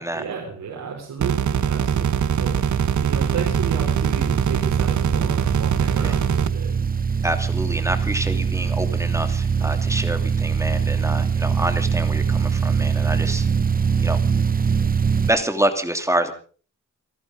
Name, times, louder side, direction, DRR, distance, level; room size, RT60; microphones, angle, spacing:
voice 1, 0.0-6.7, right 6 dB, 90° right, -2 dB, 4.9 m, -33 dB
sound 1, 1.2-6.5, right 8 dB, 65° right, 1.0 m, -22 dB
sound 2, 1.4-15.3, right 6 dB, 30° right, 0.8 m, -23 dB
voice 2, 7.2-13.4 14.0-14.2 15.2-16.3, right 1 dB, 10° right, 7 dB, 2.8 m, -27 dB
29.0 x 11.5 x 3.8 m, 0.40 s
wide cardioid pair, 115°, 32 cm